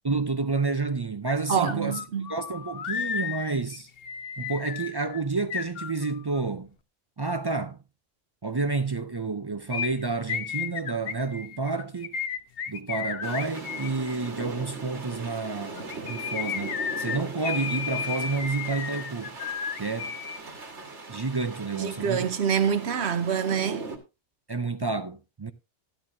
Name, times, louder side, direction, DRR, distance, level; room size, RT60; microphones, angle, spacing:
voice 1, 0.0-2.0 2.3-3.9 4.4-6.7 7.2-7.8 8.4-12.2 12.7-19.4 19.8-20.2 21.1-22.3 24.5-25.5, right 3 dB, 35° right, 0.4 m, -30 dB
sound 1, 1.3-1.4 1.6-6.4 9.7-13.9 15.8-20.4 20.6-20.7, left 7 dB, 60° left, 1.0 m, -33 dB
voice 2, 1.5-2.3 21.7-23.9, right 7 dB, 70° right, 1.1 m, -26 dB
sound 2, 13.2-24.0, right 3 dB, 90° right, 1.9 m, -40 dB
12.5 x 11.0 x 2.7 m
omnidirectional pair, 1.2 m